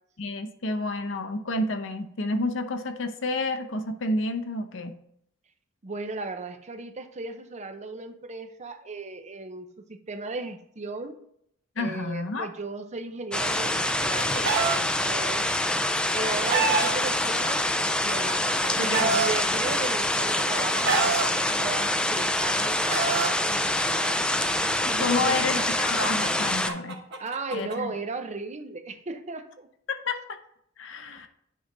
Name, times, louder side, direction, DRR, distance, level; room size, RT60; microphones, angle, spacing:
voice 1, 0.2-5.0 11.8-12.5 18.8-19.1 24.9-27.0 27.5-27.9 29.9-30.2 30.8-31.3, left 2 dB, 70° left, 6 dB, 0.7 m, -30 dB
voice 2, 5.8-11.2 11.8-15.5 16.1-24.3 25.0-25.7 27.2-29.7, right 3 dB, 35° right, 8 dB, 0.6 m, -36 dB
sound 1, 13.3-26.7, left 1 dB, 5° left, 0.3 m, -26 dB
Chicken rooster, 13.7-14.8 15.9-16.9 17.9-19.3 20.2-21.3 22.3-23.3 24.4-27.8, right 4 dB, 65° right, 0.9 m, -28 dB
9.5 x 3.4 x 3.9 m, 0.72 s
head